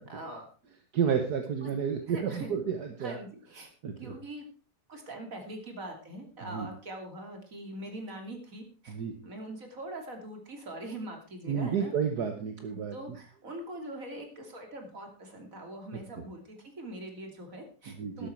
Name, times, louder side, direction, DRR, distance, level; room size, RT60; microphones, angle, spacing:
voice 1, 0.1-0.5 1.6-1.7 2.1-2.5 3.0-3.7 4.0-4.5 4.9-9.0 9.2-11.9 12.7-18.3, right 1 dB, 55° right, 4 dB, 3.2 m, -42 dB
voice 2, 0.9-3.2 3.8-4.1 6.5-6.7 8.9-9.1 11.5-13.2 17.9-18.3, right 7 dB, 75° right, 6 dB, 1.9 m, -31 dB
12.5 x 12.5 x 4.5 m, 0.38 s
omnidirectional pair, 1.7 m